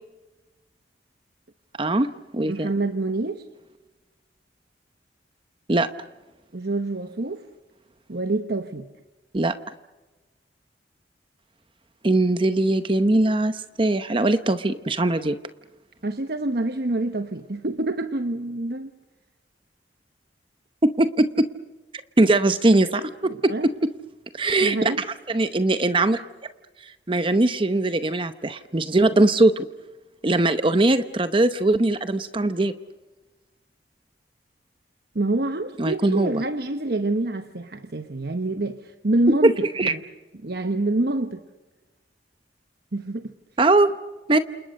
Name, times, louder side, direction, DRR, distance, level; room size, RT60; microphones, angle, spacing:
voice 1, 1.8-2.1 2.3-2.7 5.7-5.9 9.3-9.5 12.0-15.4 20.8-21.5 22.2-23.9 24.3-26.2 26.8-29.7 30.2-32.7 35.8-36.4 39.4-39.9 43.6-43.9 44.3-44.4, right 2 dB, 30° right, 11 dB, 0.8 m, -21 dB
voice 2, 2.5-3.5 6.5-7.5 8.1-8.9 16.0-18.9 23.3-23.7 24.6-25.0 35.1-39.5 39.8-40.0 40.4-41.4 42.9-43.3, right 2 dB, 60° right, 8 dB, 1.1 m, -26 dB
28.5 x 28.5 x 6.5 m, 1.2 s
head